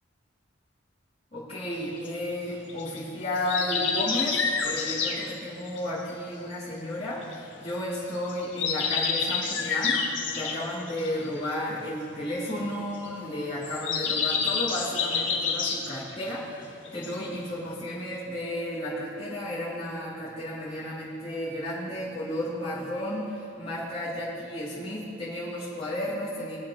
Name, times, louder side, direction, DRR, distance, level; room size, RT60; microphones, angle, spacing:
voice 1, 1.3-26.6, left 1 dB, 30° left, -11 dB, 3.5 m, -33 dB
sound 1, 1.7-7.6 7.9-16.6 16.9-17.7, left 5 dB, 75° left, 1.6 m, -29 dB
21.0 x 8.6 x 4.4 m, 2.7 s
head